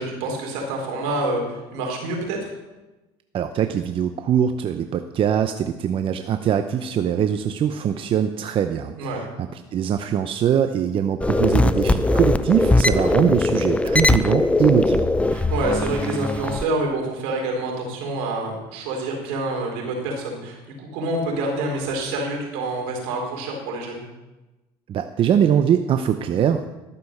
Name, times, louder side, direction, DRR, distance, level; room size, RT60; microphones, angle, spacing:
voice 1, 0.0-2.4 9.0-9.2 15.3-24.0, right 2 dB, 80° right, 0 dB, 3.9 m, -27 dB
voice 2, 3.3-15.1 24.9-26.7, right 9 dB, 45° right, 8 dB, 0.7 m, -22 dB
sound 1, 11.2-16.6, left 2 dB, 10° left, 0.6 m, -20 dB
13.0 x 6.9 x 6.6 m, 1.1 s
supercardioid pair, 90°, 12 cm